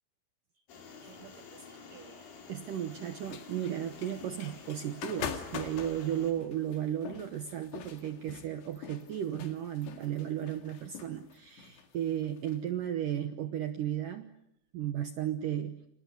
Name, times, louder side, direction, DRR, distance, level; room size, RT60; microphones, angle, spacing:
sound 1, 0.7-6.3, left 5 dB, 50° left, 4.9 m, -50 dB
voice 1, 1.0-14.3 14.7-15.9, right 10 dB, 90° right, 8 dB, 1.8 m, -35 dB
sound 2, 3.2-12.6, left 8 dB, 70° left, 4.2 m, -44 dB
29.5 x 28.0 x 6.8 m, 0.79 s
omnidirectional pair, 5.6 m